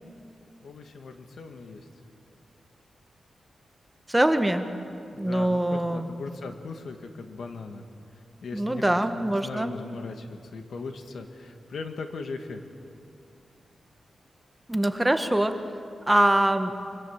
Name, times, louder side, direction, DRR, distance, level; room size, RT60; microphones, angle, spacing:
voice 1, 0.6-1.8 5.1-7.8 8.4-8.9 9.2-12.6, left 4 dB, 75° left, 6 dB, 1.8 m, -38 dB
voice 2, 4.1-4.7 5.2-6.1 8.5-9.8 14.7-15.6 16.1-16.7, right 1 dB, 10° right, 7 dB, 1.1 m, -23 dB
24.5 x 24.0 x 7.3 m, 2.5 s
wide cardioid pair, 130°, 0 cm